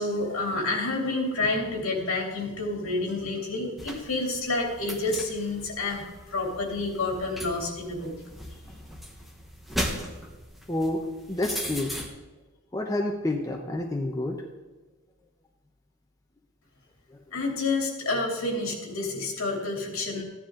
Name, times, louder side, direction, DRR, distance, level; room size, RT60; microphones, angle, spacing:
voice 1, 0.0-8.1 17.3-20.2, left 2 dB, 65° left, 0 dB, 3.0 m, -29 dB
sound 1, 3.8-12.1, equal, ahead, 1.2 m, -38 dB
voice 2, 10.7-11.0 11.3-11.9 12.7-14.4, left 1 dB, 15° left, 1 dB, 0.8 m, -28 dB
14.5 x 10.0 x 3.8 m, 1.2 s
head